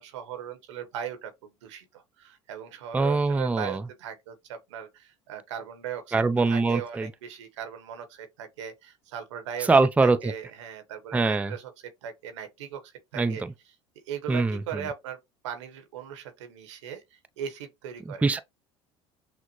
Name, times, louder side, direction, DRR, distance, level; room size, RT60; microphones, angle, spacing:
voice 1, 0.0-6.2 6.5-9.7 10.0-13.4 14.1-17.0 17.4-18.3, right 9 dB, 85° right, 1.0 m, -39 dB
voice 2, 2.9-3.8 6.1-7.1 9.7-10.3 11.1-11.5 13.1-13.5 14.3-14.8 18.2-18.4, right 3 dB, 10° right, 0.4 m, -23 dB
6.2 x 2.1 x 2.9 m
hypercardioid pair, 80°, 15 cm